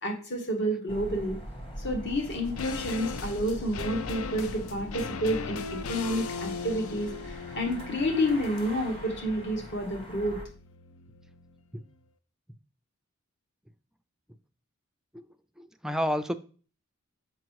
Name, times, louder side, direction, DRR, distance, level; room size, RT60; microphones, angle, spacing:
voice 1, 0.0-1.4 1.8-10.4, equal, 55° left, 3 dB, 1.5 m, -30 dB
sound 1, 0.9-10.5, equal, 25° left, 1.3 m, -42 dB
sound 2, 2.3-11.7 11.9-12.0, left 5 dB, 80° left, 0.5 m, -39 dB
voice 2, 15.6-16.4, equal, ahead, 9 dB, 0.3 m, -30 dB
6.4 x 5.5 x 4.6 m, 0.39 s
head